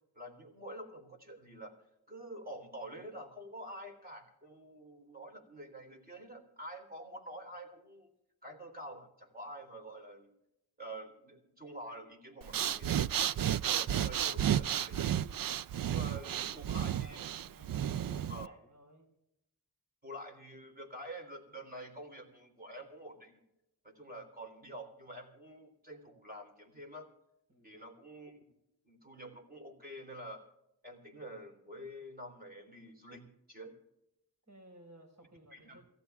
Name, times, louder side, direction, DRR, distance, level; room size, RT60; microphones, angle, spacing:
voice 1, 0.2-1.7 2.1-8.1 8.4-10.3 10.8-12.9 13.7-17.2 18.3-18.5 20.0-23.4 23.8-27.1 27.6-28.4 28.8-30.5 30.8-33.7 35.5-35.8, right 1 dB, 25° right, 3 dB, 3.6 m, -48 dB
Breathing, 12.4-18.5, right 10 dB, 65° right, 0.5 m, -32 dB
voice 2, 15.8-19.1 27.5-27.8 34.4-35.9, right 1 dB, 45° right, 3 dB, 4.8 m, -58 dB
28.0 x 15.5 x 2.4 m, 0.86 s
cardioid pair, 50°, 38 cm